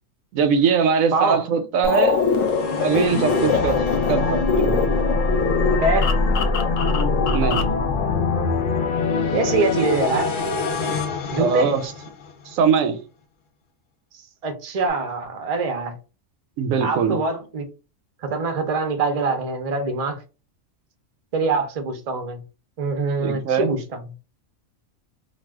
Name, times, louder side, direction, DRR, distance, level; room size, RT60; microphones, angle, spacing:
voice 1, 0.3-2.2 2.8-4.9 7.3-7.6 11.4-11.8 12.5-13.0 16.6-17.2 23.2-23.7, right 6 dB, 85° right, 1.0 m, -21 dB
voice 2, 1.1-1.4 5.8-6.1 9.3-10.3 11.3-11.7 14.1-15.9 16.8-17.7 18.2-20.2 21.3-22.4 22.8-24.0, right 3 dB, 50° right, 0.4 m, -24 dB
sound 1, 1.8-7.8, left 5 dB, 85° left, 1.0 m, -24 dB
sound 2, 2.1-12.3, left 3 dB, 60° left, 0.5 m, -24 dB
2.4 x 2.3 x 3.4 m
omnidirectional pair, 1.4 m